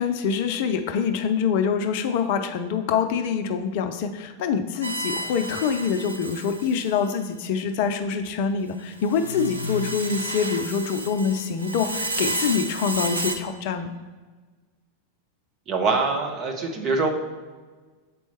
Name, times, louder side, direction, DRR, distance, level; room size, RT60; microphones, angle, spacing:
voice 1, 0.0-13.9, left 6 dB, 50° left, 8 dB, 0.5 m, -25 dB
sound 1, 4.8-7.1 9.0-13.4, right 1 dB, 85° right, 0.6 m, -31 dB
voice 2, 15.7-17.1, right 3 dB, 30° right, 2 dB, 1.1 m, -24 dB
6.9 x 4.5 x 4.3 m, 1.4 s
figure-of-eight pair, 90°, 0 cm